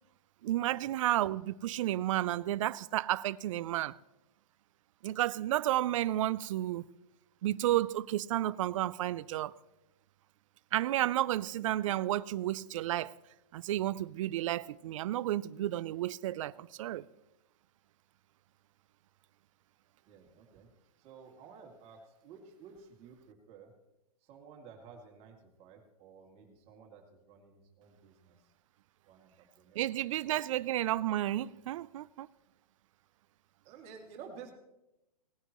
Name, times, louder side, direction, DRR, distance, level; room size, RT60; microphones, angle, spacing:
voice 1, 0.4-4.0 5.0-6.8 7.4-9.5 10.7-13.2 13.5-17.1 29.7-32.3, right 14 dB, 55° right, 0.5 m, -32 dB
voice 2, 20.1-20.7 21.0-23.7 24.2-28.4 29.1-29.8 30.3-30.4 33.6-34.5, right 6 dB, 30° right, 2.3 m, -53 dB
18.5 x 9.9 x 3.0 m
hypercardioid pair, 140°, 20 cm